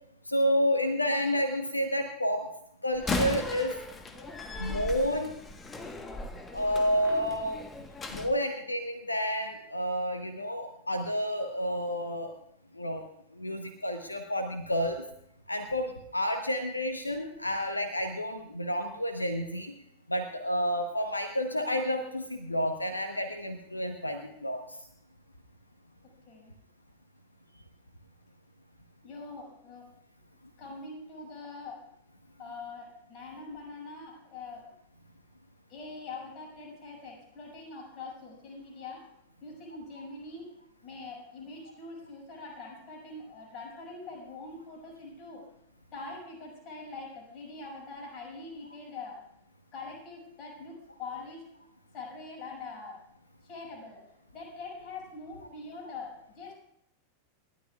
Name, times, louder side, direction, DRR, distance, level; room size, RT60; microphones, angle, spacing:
voice 1, 0.3-2.5 2.8-3.7 4.2-5.3 6.5-7.6 8.1-12.3 12.7-13.0 13.3-15.0 15.5-19.7 20.1-24.8, equal, 85° left, 6 dB, 1.0 m, -30 dB
Slam, 2.9-8.3, left 2 dB, 15° left, 1.3 m, -37 dB
voice 2, 26.0-26.5 29.0-29.9 30.6-31.9 32.4-34.7 35.7-39.1 39.4-40.5 40.8-45.4 45.9-49.2 49.7-51.5 51.9-53.0 53.4-54.0 54.3-56.5, left 3 dB, 35° left, -2 dB, 6.2 m, -43 dB
28.5 x 12.0 x 2.4 m, 0.75 s
figure-of-eight pair, 90°, 0 cm